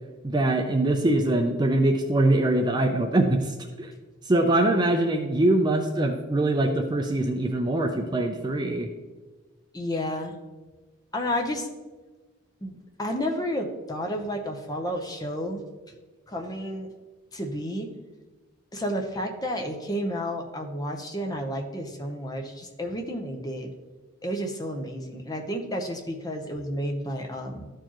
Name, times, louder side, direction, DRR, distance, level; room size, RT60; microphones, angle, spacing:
voice 1, 0.2-3.9 4.3-8.9, right 1 dB, 20° right, 4 dB, 0.4 m, -23 dB
voice 2, 9.7-10.3 11.1-11.7 12.6-15.6 16.3-16.9 17.3-17.9 18.7-23.7 24.2-27.7, equal, 20° left, 2 dB, 0.7 m, -31 dB
12.5 x 4.6 x 3.0 m, 1.3 s
head